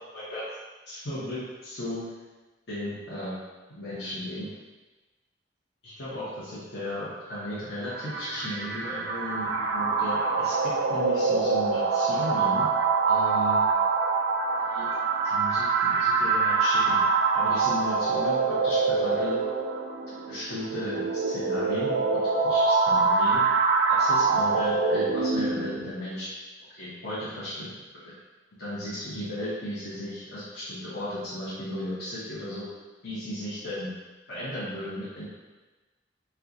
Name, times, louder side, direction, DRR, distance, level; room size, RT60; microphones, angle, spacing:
voice 1, 0.1-0.5 0.9-2.0 2.7-3.4 3.8-4.5 5.8-12.7 13.1-13.6 14.7-14.9 15.2-17.0 17.3-19.4 20.3-22.0 22.4-23.4 23.9-26.3 26.7-27.7 28.6-32.7 33.0-33.9 34.3-35.2, equal, 55° left, -12 dB, 0.9 m, -35 dB
sound 1, 7.9-25.9, right 4 dB, 80° right, 0.4 m, -25 dB
4.3 x 2.2 x 2.5 m, 1.2 s
head